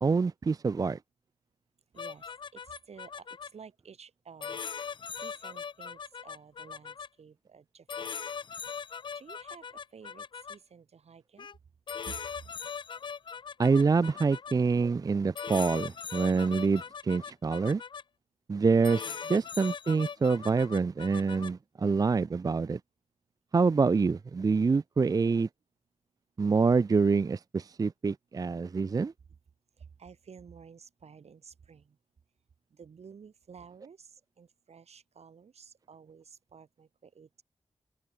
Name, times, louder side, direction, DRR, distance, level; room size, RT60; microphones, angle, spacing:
voice 1, 0.0-1.0 13.6-17.8 18.5-22.8 23.5-25.5 26.4-29.1, right 4 dB, 35° right, 0.4 m, -26 dB
voice 2, 1.9-2.3 2.5-4.9 5.2-8.1 9.1-11.5 12.1-12.2 19.2-19.5 29.8-32.0 32.7-37.4, right 6 dB, 75° right, 2.9 m, -52 dB
sound 1, 2.0-3.5 4.4-7.1 7.9-10.6 11.4-11.6 11.9-14.5 15.3-18.0 18.8-21.5, left 6 dB, 45° left, 0.3 m, -40 dB
open air
wide cardioid pair, 90°, 11 cm